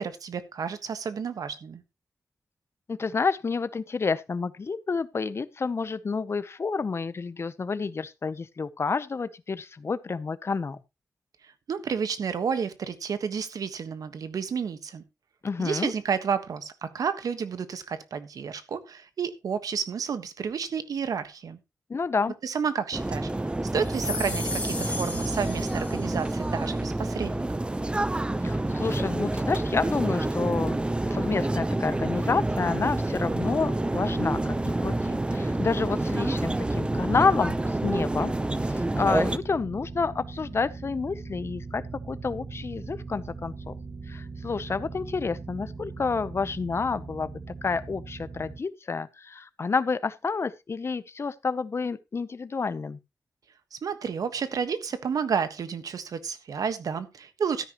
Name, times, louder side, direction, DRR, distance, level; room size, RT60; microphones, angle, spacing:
voice 1, 0.0-1.8 11.4-15.0 15.6-21.6 22.4-23.3 23.7-27.5 53.7-57.6, right 6 dB, 80° right, 1.3 m, -31 dB
voice 2, 2.9-10.8 15.4-15.9 21.9-22.3 28.4-38.3 38.7-43.7 44.1-53.0, left 4 dB, 45° left, 0.7 m, -29 dB
sound 1, 22.9-39.4, right 2 dB, 15° right, 0.7 m, -28 dB
sound 2, 23.8-26.4, left 2 dB, 20° left, 5.0 m, -35 dB
sound 3, 32.3-48.6, right 4 dB, 35° right, 1.5 m, -40 dB
13.0 x 10.0 x 3.0 m
cardioid pair, 75°, 6 cm